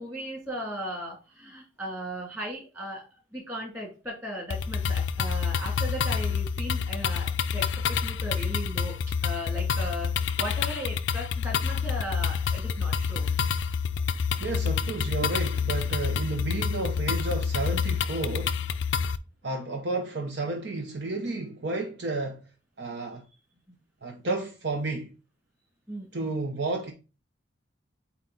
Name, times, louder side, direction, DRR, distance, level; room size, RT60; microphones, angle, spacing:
voice 1, 0.0-3.1 3.3-8.9 9.2-13.3 25.9-26.4, equal, 15° right, 2.5 m, -37 dB
sound 1, 4.5-19.2, left 6 dB, 70° left, 0.4 m, -28 dB
voice 2, 14.4-18.6 19.4-22.4 22.8-23.2 24.0-25.1 26.1-26.9, right 2 dB, 60° right, 0.8 m, -32 dB
8.1 x 3.0 x 3.9 m
head